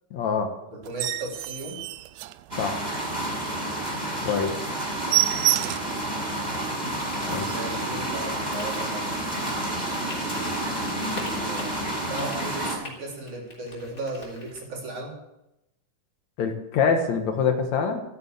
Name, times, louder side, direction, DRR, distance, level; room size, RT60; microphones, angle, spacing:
voice 1, 0.1-0.5 2.6-2.8 4.2-4.5 7.3-7.5 16.4-18.0, left 6 dB, 65° left, 6 dB, 2.5 m, -25 dB
voice 2, 0.7-1.8 4.4-4.6 7.4-9.1 11.2-15.2, right 2 dB, 65° right, -1 dB, 4.9 m, -36 dB
sound 1, 0.8-3.0 3.4-3.6 3.9-4.0 4.3-4.5 4.7-6.0 6.5-6.6 7.0-7.1 7.3-7.8 8.5-8.7, right 17 dB, 80° right, 2.1 m, -28 dB
sound 2, 2.5-12.8, right 1 dB, 5° right, 6.2 m, -30 dB
sound 3, 8.5-14.6, left 2 dB, 25° left, 3.8 m, -44 dB
13.5 x 9.6 x 8.1 m, 0.89 s
omnidirectional pair, 3.7 m